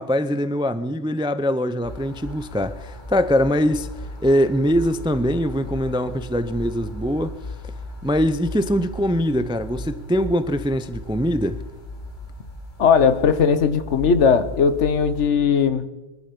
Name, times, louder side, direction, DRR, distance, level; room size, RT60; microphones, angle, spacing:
voice 1, 0.0-3.9 4.2-7.4 8.0-11.6, equal, 10° right, 0.3 m, -22 dB
sound 1, 1.8-15.3, left 1 dB, 40° left, 2.5 m, -36 dB
voice 2, 12.8-15.9, left 6 dB, 80° left, 1.3 m, -18 dB
24.5 x 11.0 x 5.3 m
omnidirectional pair, 1.2 m